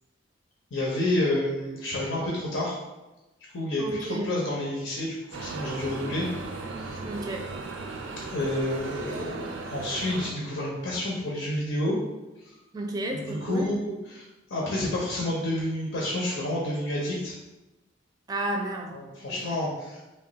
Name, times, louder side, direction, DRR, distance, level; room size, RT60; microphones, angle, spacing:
voice 1, 0.7-2.8 3.5-6.3 6.8-7.0 8.3-12.0 12.4-12.5 13.1-17.3 18.9-20.0, left 1 dB, 70° left, -4 dB, 0.7 m, -29 dB
voice 2, 3.8-4.3 7.0-7.5 12.7-13.7 18.3-19.0 19.3-19.6, right 1 dB, 20° right, 1 dB, 0.4 m, -32 dB
sound 1, 5.3-10.3, right 3 dB, 85° right, 0.4 m, -36 dB
3.1 x 2.2 x 3.9 m, 1.0 s
head